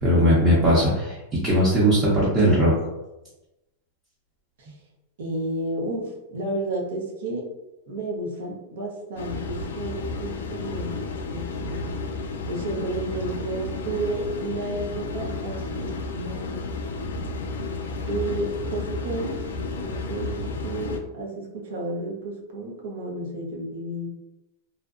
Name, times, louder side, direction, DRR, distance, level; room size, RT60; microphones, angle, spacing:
voice 1, 0.0-2.7, equal, 25° right, -8 dB, 0.7 m, -19 dB
voice 2, 5.2-7.5 7.9-12.0 12.5-16.7 18.1-19.5 19.8-24.1, right 2 dB, 80° right, -1 dB, 0.7 m, -32 dB
sound 1, 9.2-21.0, left 3 dB, 90° left, 0.3 m, -32 dB
2.6 x 2.1 x 2.4 m, 0.99 s
supercardioid pair, 145°, 0 cm